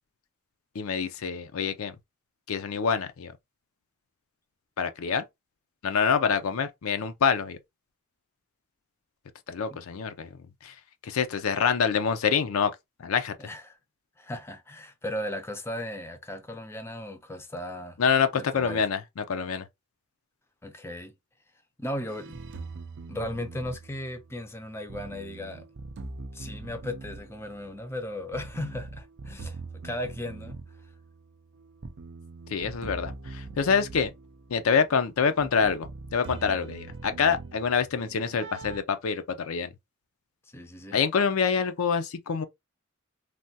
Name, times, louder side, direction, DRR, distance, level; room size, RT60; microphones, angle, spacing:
voice 1, 0.7-2.0 2.5-3.3 4.8-5.2 5.8-7.6 9.5-10.3 10.6-10.7 11.0-12.7 13.0-13.3 18.0-19.7 32.5-34.1 34.5-39.7 40.9-42.4, left 6 dB, 75° left, 0.5 m, -26 dB
voice 2, 13.4-13.8 14.2-18.0 18.3-18.8 20.6-21.1 21.8-22.4 23.1-25.6 26.3-30.6 40.5-41.0, left 1 dB, 10° left, 0.5 m, -36 dB
sound 1, 22.1-38.8, right 3 dB, 55° right, 0.5 m, -43 dB
3.3 x 2.3 x 2.6 m
head